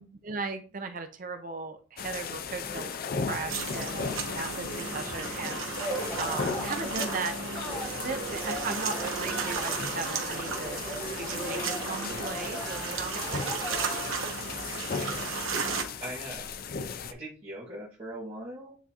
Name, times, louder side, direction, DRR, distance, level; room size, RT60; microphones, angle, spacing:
voice 1, 0.0-3.0 3.3-5.9 6.2-7.3 7.7-10.8 11.1-13.9, right 4 dB, 40° right, 7 dB, 0.6 m, -37 dB
sound 1, 2.0-17.1, left 5 dB, 45° left, 0.4 m, -37 dB
sound 2, 3.5-15.8, right 5 dB, 80° right, 1.1 m, -35 dB
sound 3, 5.8-14.2, right 1 dB, 25° left, 1.3 m, -38 dB
voice 2, 14.9-15.3 16.0-16.5 17.1-18.8, right 1 dB, 25° right, -10 dB, 1.8 m, -41 dB
9.1 x 3.6 x 2.9 m, 0.37 s
head